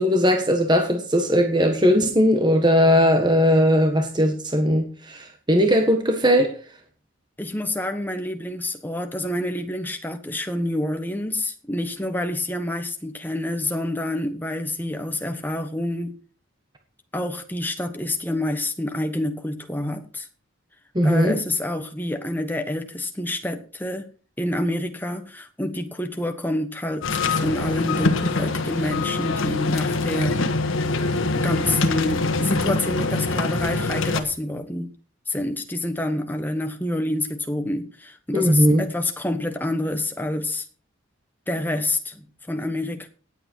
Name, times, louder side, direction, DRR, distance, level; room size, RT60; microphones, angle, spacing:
voice 1, 0.0-6.6 20.9-21.4 38.3-38.8, equal, 20° right, 1.4 m, -19 dB
voice 2, 7.4-16.2 17.1-20.3 21.0-24.1 24.4-30.4 31.3-34.9 35.3-40.6 41.5-43.1, left 1 dB, 10° left, 1.3 m, -28 dB
sound 1, 27.0-34.2, left 3 dB, 75° left, 1.5 m, -24 dB
18.0 x 8.1 x 4.6 m
head